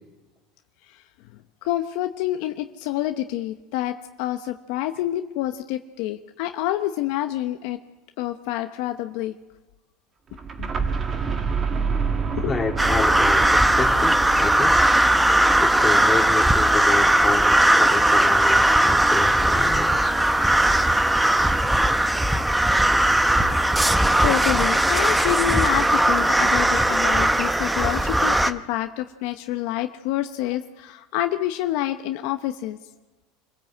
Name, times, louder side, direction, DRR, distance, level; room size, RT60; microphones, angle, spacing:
voice 1, 1.6-7.8 8.2-9.3 10.6-10.7 12.4-12.5 23.4-23.5 23.8-32.8, left 14 dB, 70° left, 7 dB, 0.9 m, -27 dB
sound 1, 10.3-16.1, right 5 dB, 25° right, 1.6 m, -28 dB
voice 2, 12.5-14.9 15.6-20.1, left 4 dB, 20° left, 1 dB, 3.0 m, -29 dB
sound 2, 12.8-28.5, right 1 dB, 5° right, 0.8 m, -19 dB
26.5 x 16.0 x 7.9 m, 1.1 s
supercardioid pair, 130°, 0 cm